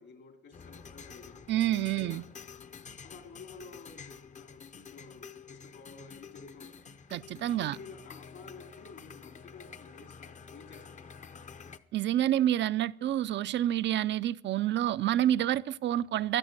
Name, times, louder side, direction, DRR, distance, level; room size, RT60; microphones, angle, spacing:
voice 1, 0.0-1.4 1.9-2.2 3.0-6.8 7.5-11.0, left 4 dB, 70° left, 2.8 m, -51 dB
sound 1, 0.5-11.8, left 6 dB, 40° left, 0.7 m, -49 dB
voice 2, 1.5-2.2 7.1-7.8 11.9-16.4, right 12 dB, 65° right, 0.5 m, -28 dB
15.5 x 11.0 x 6.7 m
cardioid pair, 90°, 20 cm